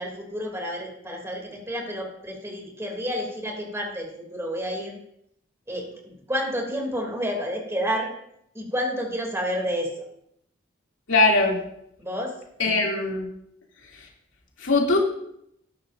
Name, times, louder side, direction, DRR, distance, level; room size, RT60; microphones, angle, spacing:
voice 1, 0.0-5.0 5.7-8.1 8.5-10.0 12.0-12.3, equal, 15° right, 0 dB, 2.8 m, -30 dB
voice 2, 11.1-11.6 12.6-13.3 14.6-15.0, left 2 dB, 75° left, -2 dB, 2.7 m, -20 dB
18.0 x 10.5 x 2.6 m, 0.74 s
head